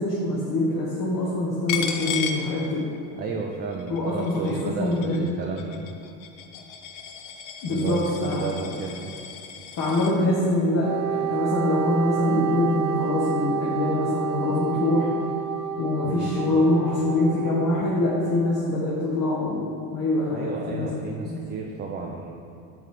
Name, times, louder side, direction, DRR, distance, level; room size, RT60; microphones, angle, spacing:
voice 1, 0.0-2.9 3.9-5.2 7.6-8.4 9.7-15.1 15.8-20.9 21.2-21.3, left 2 dB, 40° left, -5 dB, 1.2 m, -24 dB
Coin (dropping), 1.7-3.2 3.5-10.1, left 7 dB, 65° left, 0.7 m, -35 dB
voice 2, 3.1-5.9 7.7-9.1 16.0-16.4 20.3-22.3, right 4 dB, 20° right, 0 dB, 0.4 m, -32 dB
Wind instrument woodwind instrument, 10.8-18.5, right 10 dB, 65° right, 0.7 m, -30 dB
5.7 x 3.7 x 4.8 m, 2.6 s
hypercardioid pair, 85°, 47 cm